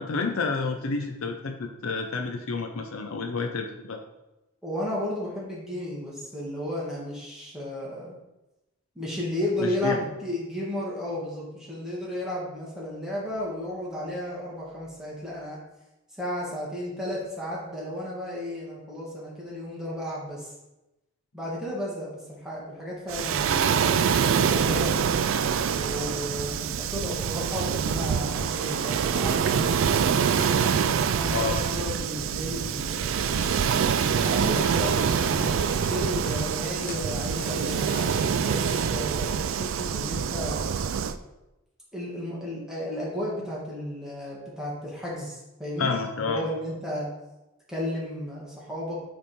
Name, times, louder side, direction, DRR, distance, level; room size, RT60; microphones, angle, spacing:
voice 1, 0.0-4.0 9.6-10.0 31.3-31.7 45.8-46.5, left 4 dB, 75° left, 3 dB, 0.6 m, -29 dB
voice 2, 4.6-8.1 8.9-15.6 16.2-20.5 21.3-25.0 25.7-29.6 31.1-33.3 34.2-37.9 38.4-40.7 41.9-45.9 46.2-47.1 47.7-49.0, left 1 dB, 5° right, -6 dB, 1.7 m, -33 dB
Waves surf, 23.1-41.1, right 7 dB, 65° right, 0.3 m, -25 dB
sound 1, 33.1-38.4, left 1 dB, 40° left, 1.0 m, -43 dB
8.5 x 3.4 x 4.2 m, 0.97 s
head